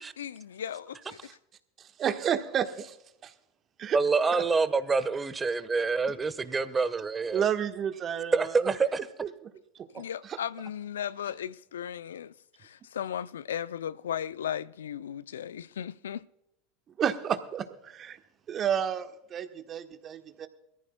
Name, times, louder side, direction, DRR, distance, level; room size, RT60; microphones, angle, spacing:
voice 1, 0.2-1.2 9.9-16.2, left 9 dB, 80° left, 0.4 m, -36 dB
voice 2, 1.8-3.0 3.2-3.3 3.8-4.0 4.3-4.4 7.3-8.7 9.9-10.0 10.3-10.4 17.0-18.2 18.5-20.5, right 8 dB, 35° right, 1.3 m, -31 dB
voice 3, 3.9-7.4 8.3-9.0, right 4 dB, 20° right, 1.2 m, -26 dB
22.0 x 14.0 x 2.2 m
hypercardioid pair, 85°, 0 cm